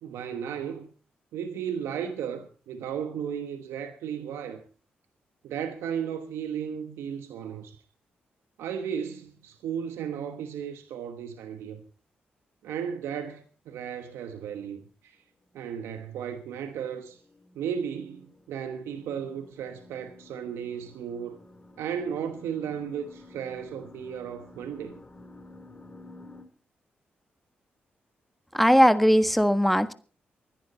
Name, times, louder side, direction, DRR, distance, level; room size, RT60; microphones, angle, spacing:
voice 1, 0.0-0.9 1.3-4.6 5.4-7.8 8.6-11.8 12.6-15.2 15.5-17.2 17.5-21.4 21.8-25.0, right 8 dB, 90° right, 1.2 m, -35 dB
sound 1, 16.1-26.4, left 2 dB, 30° left, 3.7 m, -51 dB
voice 2, 28.5-29.9, equal, ahead, 1.5 m, -19 dB
24.5 x 10.5 x 4.2 m
supercardioid pair, 50°, 4 cm